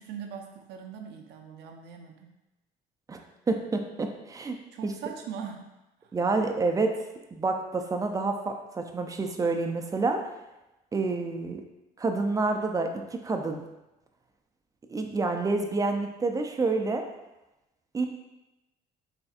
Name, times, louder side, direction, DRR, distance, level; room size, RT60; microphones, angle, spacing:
voice 1, 0.0-2.3 4.7-5.7 6.0-6.2, right 7 dB, 85° right, 3 dB, 0.5 m, -41 dB
voice 2, 3.5-4.6 4.8-4.9 6.1-6.9 7.3-10.2 10.9-11.6 12.0-13.6 14.9-17.0 17.9-18.1, right 3 dB, 20° right, 4 dB, 0.4 m, -28 dB
4.0 x 3.4 x 2.4 m, 0.96 s
cardioid pair, 110°, 17 cm